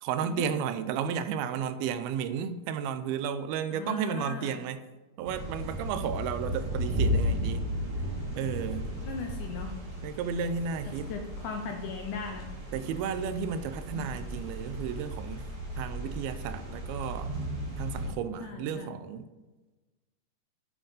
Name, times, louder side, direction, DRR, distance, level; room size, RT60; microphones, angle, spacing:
voice 1, 0.0-4.8 5.2-7.7 8.4-8.9 10.0-11.1 12.7-15.5 15.8-17.3 17.8-19.3, right 7 dB, 90° right, 11 dB, 2.5 m, -33 dB
voice 2, 3.7-4.6 9.0-9.8 10.9-12.5 13.9-14.2 18.4-18.9, left 5 dB, 75° left, 4 dB, 1.9 m, -38 dB
sound 1, 5.3-18.1, equal, 20° right, 1.9 m, -34 dB
9.1 x 7.2 x 5.2 m, 1.2 s
omnidirectional pair, 4.4 m